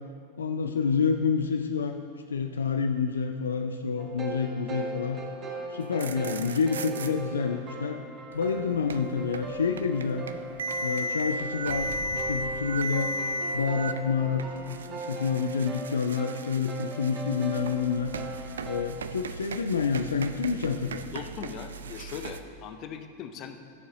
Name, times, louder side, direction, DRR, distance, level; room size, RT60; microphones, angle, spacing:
voice 1, 0.4-2.0 2.3-5.2 5.7-8.0 8.3-10.3 10.8-13.1 13.5-18.1 18.6-21.0, left 5 dB, 70° left, 6 dB, 0.4 m, -28 dB
sound 1, 4.0-18.8, right 2 dB, 30° right, 1.1 m, -39 dB
sound 2, 5.8-7.1 8.3-22.4, right 1 dB, 65° right, 0.4 m, -36 dB
Explosion, 11.7-15.0, equal, 5° left, 2.0 m, -46 dB
voice 2, 21.1-23.6, left 8 dB, 35° left, 7 dB, 0.7 m, -40 dB
12.5 x 6.7 x 3.8 m, 2.3 s
figure-of-eight pair, 90°, 0 cm